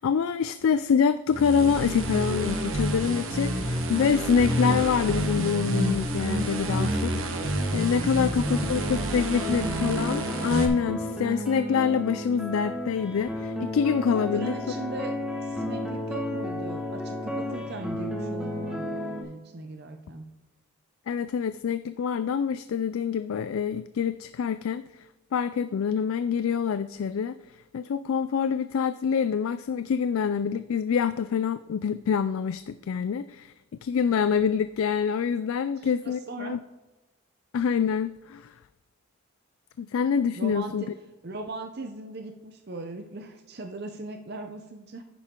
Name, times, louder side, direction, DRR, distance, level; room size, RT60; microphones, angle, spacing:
voice 1, 0.0-7.1 7.7-14.5 21.1-25.1 25.3-27.4 27.7-33.5 33.8-36.6 37.5-38.5 39.8-40.9, left 6 dB, 70° left, 13 dB, 0.3 m, -26 dB
sound 1, 1.3-10.7, right 1 dB, 65° right, 1.3 m, -28 dB
voice 2, 8.0-9.2 14.2-15.1 15.4-20.3 35.8-36.6 40.3-40.9 41.2-45.0, right 2 dB, 45° right, 5 dB, 0.7 m, -39 dB
sound 2, 8.5-19.2, left 1 dB, 5° right, 1.5 m, -33 dB
10.0 x 9.9 x 3.7 m, 1.1 s
head